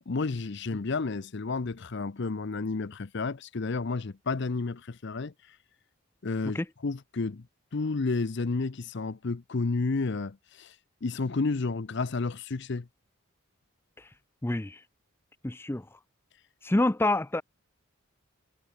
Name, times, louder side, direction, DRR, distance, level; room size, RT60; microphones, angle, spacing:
voice 1, 0.1-5.6 6.2-7.5 7.7-10.7 11.0-12.9, left 3 dB, 55° left, 0.6 m, -31 dB
voice 2, 14.4-14.8 15.4-15.9 16.6-17.4, left 2 dB, 10° left, 0.4 m, -27 dB
head